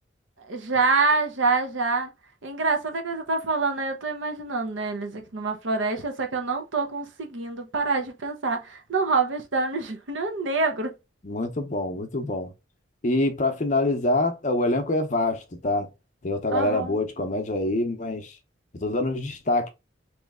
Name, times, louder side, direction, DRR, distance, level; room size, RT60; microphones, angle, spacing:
voice 1, 0.5-2.1 2.4-10.9 16.5-17.0, right 3 dB, 75° right, 0.8 m, -26 dB
voice 2, 11.2-12.5 13.0-15.9 16.2-18.4 18.7-19.7, left 2 dB, 40° left, 0.6 m, -25 dB
3.1 x 3.1 x 3.6 m
head